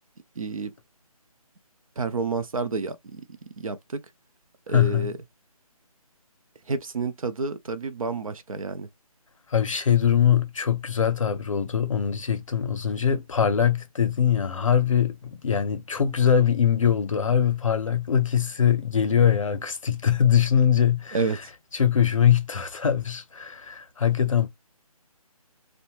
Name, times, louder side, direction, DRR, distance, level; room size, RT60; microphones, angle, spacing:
voice 1, 0.4-0.7 2.0-3.2 3.6-4.0 4.7-5.1 6.7-8.9 21.1-21.4, right 4 dB, 65° right, 0.5 m, -29 dB
voice 2, 4.7-5.1 9.5-21.5 21.7-24.5, left 8 dB, 60° left, 0.6 m, -22 dB
2.6 x 2.1 x 2.9 m
figure-of-eight pair, 155°, 19 cm